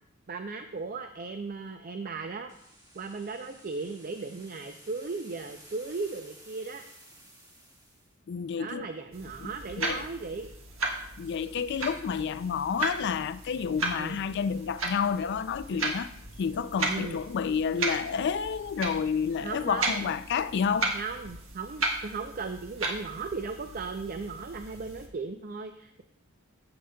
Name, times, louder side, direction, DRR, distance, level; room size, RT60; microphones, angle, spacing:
voice 1, 0.3-2.5 2.9-6.8 8.6-10.5 13.9-14.2 15.7-15.8 16.9-17.2 19.4-20.1 20.9-26.0, right 4 dB, 45° right, 0.5 m, -37 dB
sound 1, 2.5-8.2, right 1 dB, 20° right, 1.8 m, -54 dB
voice 2, 8.3-8.9 9.4-9.5 9.8-10.1 11.2-16.1 16.4-20.9, left 6 dB, 55° left, 0.4 m, -30 dB
sound 2, 9.1-25.1, right 2 dB, 70° right, 1.5 m, -36 dB
14.5 x 7.8 x 2.3 m
head